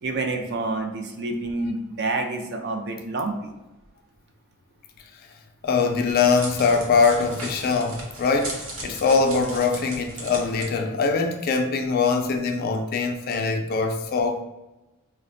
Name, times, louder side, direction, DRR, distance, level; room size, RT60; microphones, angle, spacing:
voice 1, 0.0-3.5, right 2 dB, 50° right, 3 dB, 0.4 m, -28 dB
voice 2, 5.6-14.4, left 4 dB, 45° left, 4 dB, 0.3 m, -22 dB
Crackle, 5.7-10.6, right 1 dB, 75° right, 0.8 m, -37 dB
4.1 x 2.1 x 2.6 m, 1.0 s
head